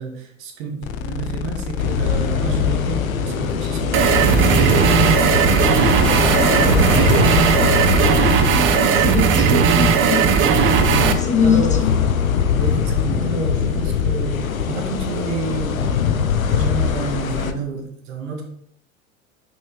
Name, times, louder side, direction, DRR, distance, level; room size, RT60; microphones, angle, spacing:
voice 1, 0.0-7.4 10.4-11.8 12.5-15.9 16.5-18.4, right 4 dB, 55° right, 3 dB, 1.7 m, -29 dB
sound 1, 0.8-6.5, left 7 dB, 35° left, 0.7 m, -30 dB
sound 2, 1.8-17.5, left 7 dB, 85° left, 0.6 m, -22 dB
sound 3, 3.9-11.1, right 7 dB, 30° right, 0.7 m, -16 dB
voice 2, 8.5-10.2 11.0-11.9, left 6 dB, 15° left, 2 dB, 1.3 m, -22 dB
6.4 x 5.4 x 3.1 m, 0.69 s
figure-of-eight pair, 85°, 40 cm